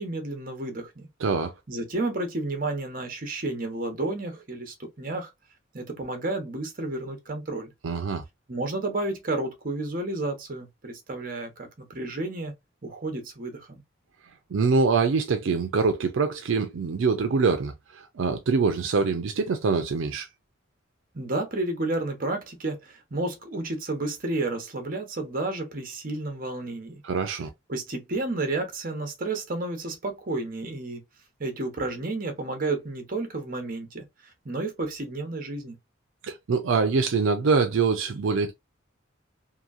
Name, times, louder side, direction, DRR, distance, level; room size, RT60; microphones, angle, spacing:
voice 1, 0.0-1.1 1.7-5.3 5.7-7.7 8.5-12.5 12.8-13.8 21.1-27.0 27.7-31.0 31.4-34.0 34.4-35.8, right 2 dB, 45° right, 0.8 m, -31 dB
voice 2, 1.2-1.5 7.8-8.2 14.5-20.3 27.0-27.5 36.2-38.5, right 4 dB, 75° right, 0.4 m, -24 dB
2.8 x 2.6 x 2.4 m
head